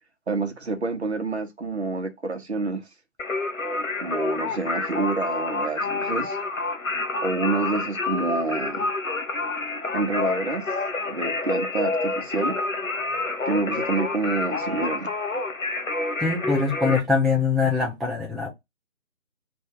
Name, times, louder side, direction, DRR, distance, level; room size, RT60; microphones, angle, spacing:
voice 1, 0.3-2.9 3.8-6.4 7.2-8.9 9.9-10.7 11.0-12.6 13.4-15.1, right 3 dB, 50° right, 0.9 m, -28 dB
Singing, 3.2-17.0, left 3 dB, 70° left, 1.1 m, -28 dB
voice 2, 16.2-18.5, left 4 dB, ahead, 0.4 m, -23 dB
3.3 x 2.6 x 3.7 m
figure-of-eight pair, 155°, 42 cm